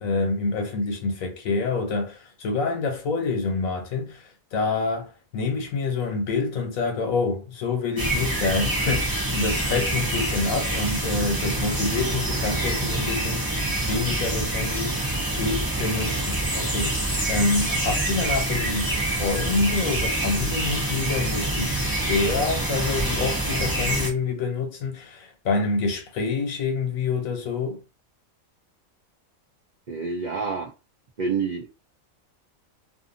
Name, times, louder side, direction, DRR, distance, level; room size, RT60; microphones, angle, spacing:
voice 1, 0.0-4.2 4.5-13.5 13.8-15.0 15.3-27.8, left 4 dB, 75° left, 1.2 m, -27 dB
sound 1, 8.0-24.1, right 1 dB, 25° right, 0.5 m, -26 dB
voice 2, 29.9-30.7 31.2-31.7, right 5 dB, 80° right, 0.4 m, -27 dB
2.6 x 2.5 x 2.5 m
omnidirectional pair, 1.5 m